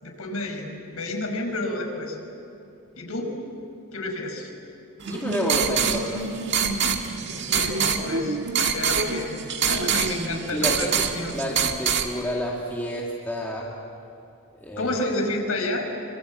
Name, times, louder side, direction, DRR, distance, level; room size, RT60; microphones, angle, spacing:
voice 1, 0.0-2.2 3.0-3.4 3.9-4.5 7.3-9.3 9.7-10.9 11.2-11.4 14.8-15.9, left 2 dB, 80° left, 2 dB, 5.3 m, -30 dB
sound 1, 5.0-12.1, right 6 dB, 55° right, 1.8 m, -25 dB
voice 2, 5.1-6.3 10.3-11.1 11.3-13.7 14.6-15.1, equal, 10° left, -4 dB, 2.4 m, -30 dB
26.0 x 25.5 x 8.3 m, 2.7 s
head